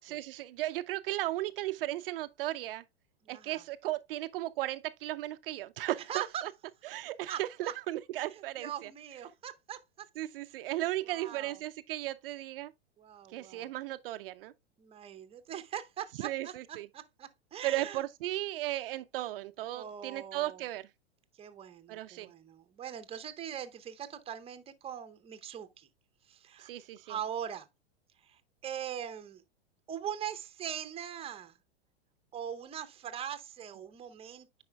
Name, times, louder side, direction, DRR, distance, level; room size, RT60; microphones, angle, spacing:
voice 1, 0.1-2.8 3.3-6.5 6.8-8.9 10.2-12.7 13.3-14.5 16.2-16.9 17.6-20.9 21.9-22.3 26.6-27.1, right 15 dB, 60° right, 0.5 m, -36 dB
voice 2, 3.2-3.6 6.0-6.4 7.3-7.7 8.3-10.1 11.0-11.6 13.0-13.7 14.8-18.0 19.7-20.6 21.4-25.9 26.3-26.7 27.0-27.7 28.2-29.4 29.9-31.6 32.3-34.6, right 9 dB, 20° right, 0.7 m, -41 dB
9.5 x 4.8 x 2.2 m
hypercardioid pair, 115°, 32 cm